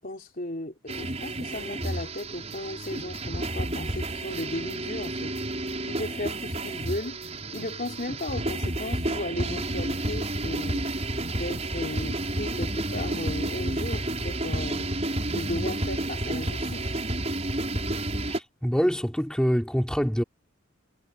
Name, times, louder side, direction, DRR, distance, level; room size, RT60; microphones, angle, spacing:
voice 1, 0.0-5.3 5.9-7.3 7.5-10.8 11.3-14.9 15.3-16.9, left 1 dB, 40° left, 3.7 m, -35 dB
sound 1, 0.9-18.4, right 1 dB, 30° right, 6.4 m, -30 dB
voice 2, 18.2-20.2, equal, 5° left, 3.1 m, -25 dB
head